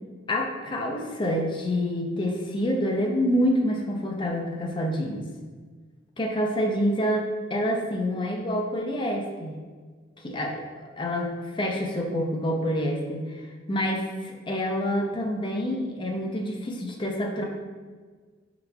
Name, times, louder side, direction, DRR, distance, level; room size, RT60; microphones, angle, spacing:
voice 1, 0.3-5.2 6.2-9.6 10.2-14.0 14.5-17.4, equal, 25° left, 1 dB, 0.5 m, -27 dB
4.5 x 4.0 x 2.2 m, 1.4 s
head